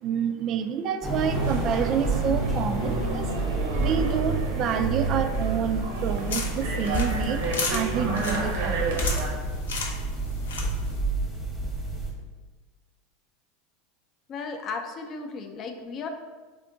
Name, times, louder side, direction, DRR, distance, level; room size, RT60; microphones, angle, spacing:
voice 1, 0.0-3.3 3.8-9.2, right 7 dB, 45° right, 8 dB, 0.3 m, -28 dB
sound 1, 1.0-12.1, right 2 dB, ahead, 0.9 m, -29 dB
sound 2, 1.3-9.3, right 2 dB, 75° right, 0.7 m, -33 dB
sound 3, 6.0-11.0, left 4 dB, 90° left, 0.6 m, -35 dB
voice 2, 14.3-16.1, left 4 dB, 40° left, 5 dB, 0.5 m, -35 dB
3.5 x 2.5 x 3.7 m, 1.4 s
hypercardioid pair, 100°, 0 cm